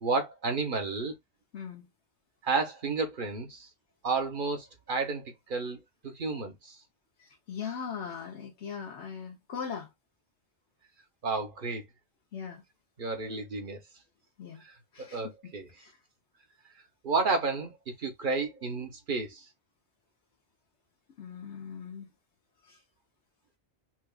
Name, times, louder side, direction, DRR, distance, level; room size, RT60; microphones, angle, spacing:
voice 1, 0.0-1.1 2.4-3.7 4.0-5.8 6.0-6.8 11.2-11.8 13.0-13.8 15.0-15.7 17.0-19.4, right 4 dB, 50° right, 1.1 m, -31 dB
voice 2, 1.5-1.9 7.2-9.9 12.3-12.6 14.4-14.6 14.9-16.0 21.2-22.1 22.6-22.8, left 7 dB, 85° left, 1.2 m, -40 dB
6.0 x 2.4 x 2.3 m
omnidirectional pair, 1.1 m